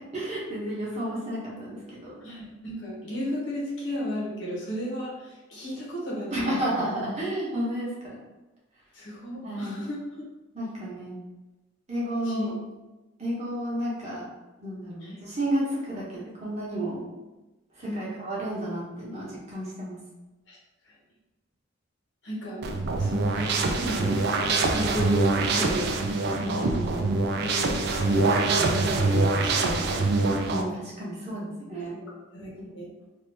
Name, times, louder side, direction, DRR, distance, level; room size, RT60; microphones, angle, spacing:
voice 1, 0.1-2.2 6.3-8.1 9.4-9.8 10.5-11.2 11.9-12.5 13.2-14.2 14.6-17.0 17.8-20.0 26.4-26.6 28.7-28.8 30.5-32.0 32.5-32.6, right 1 dB, 35° right, -7 dB, 1.0 m, -31 dB
voice 2, 2.2-7.1 8.9-10.3 12.2-12.6 15.0-15.2 17.8-18.3 20.5-20.6 22.2-22.6 23.0-25.9 26.5-28.4 28.7-30.3 31.8-32.9, equal, 65° left, -5 dB, 1.0 m, -35 dB
sound 1, 22.6-30.6, right 3 dB, 55° right, 0.4 m, -24 dB
2.8 x 2.6 x 3.4 m, 1.1 s
head